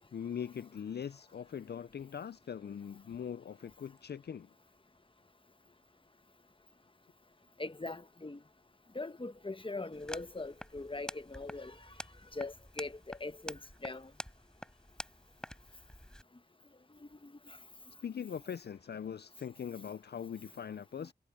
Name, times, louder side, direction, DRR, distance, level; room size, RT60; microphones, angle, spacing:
voice 1, 0.1-4.5 18.0-21.1, left 8 dB, 65° left, 0.4 m, -41 dB
voice 2, 7.6-8.4 8.9-11.8 12.3-14.1 17.0-17.6, left 2 dB, 30° left, 1.1 m, -41 dB
sound 1, 9.9-16.2, equal, 5° left, 5.9 m, -48 dB
wide cardioid pair, 45°, 18 cm